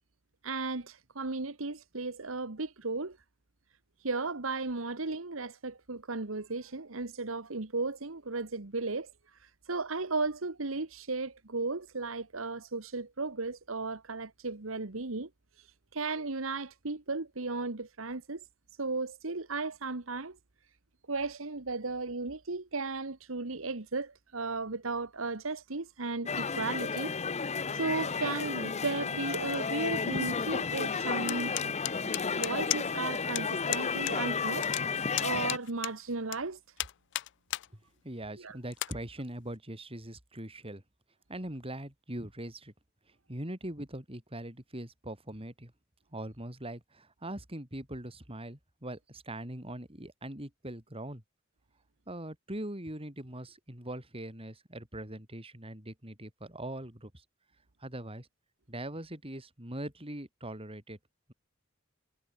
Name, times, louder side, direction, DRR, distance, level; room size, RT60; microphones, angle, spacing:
voice 1, 0.4-3.2 4.0-9.1 9.7-15.3 15.9-18.4 18.8-20.4 21.1-27.1 27.7-32.1 32.4-36.6 38.4-38.6, right 3 dB, 80° right, 1.6 m, -35 dB
sound 1, 26.3-35.6, left 5 dB, 35° left, 0.8 m, -32 dB
sound 2, 31.3-33.1 33.4-33.5 33.7-34.2 34.4-36.4 36.8-37.7 38.1-38.2 38.7-38.9, left 17 dB, 60° left, 0.4 m, -34 dB
voice 2, 38.0-40.8 41.3-42.7 43.3-45.7 46.1-51.2 52.1-57.2 57.8-58.3 58.7-61.0, right 1 dB, 30° right, 5.6 m, -41 dB
head